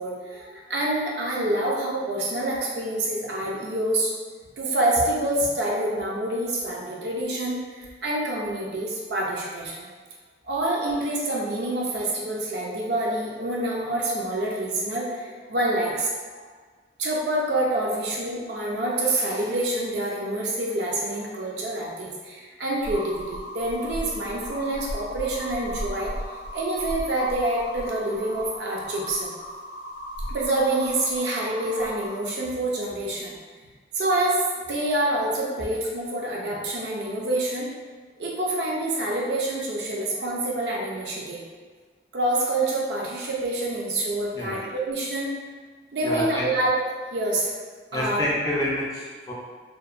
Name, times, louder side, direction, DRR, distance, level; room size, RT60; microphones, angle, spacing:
voice 1, 0.0-4.1 4.6-9.9 10.5-16.4 17.0-26.1 26.5-29.3 30.3-33.4 33.9-37.7 38.2-41.4 42.1-45.3 45.9-46.8 47.1-47.5 47.9-48.3, right 1 dB, 75° right, -3 dB, 0.4 m, -27 dB
sound 1, 22.8-32.2, equal, 90° left, 0.5 m, -36 dB
voice 2, 46.0-46.5 47.9-49.3, left 1 dB, 20° left, -5 dB, 0.4 m, -28 dB
2.8 x 2.0 x 2.4 m, 1.5 s
head